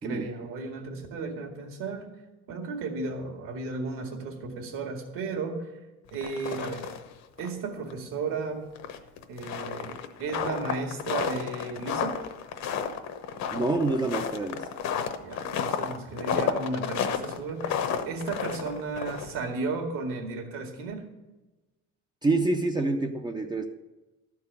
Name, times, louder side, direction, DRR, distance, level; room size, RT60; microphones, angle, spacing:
voice 1, 0.0-2.1 2.5-5.7 6.1-6.9 7.4-8.6 9.3-12.2 15.2-21.1, right 4 dB, 75° right, 2 dB, 2.1 m, -34 dB
sound 1, 6.1-7.1 7.4-7.5 7.9-8.0 8.8-19.5, left 7 dB, 55° left, 0.9 m, -31 dB
voice 2, 13.5-14.6 22.2-23.6, right 2 dB, 15° right, 4 dB, 0.4 m, -27 dB
12.5 x 4.7 x 8.3 m, 1.1 s
cardioid pair, 150°, 33 cm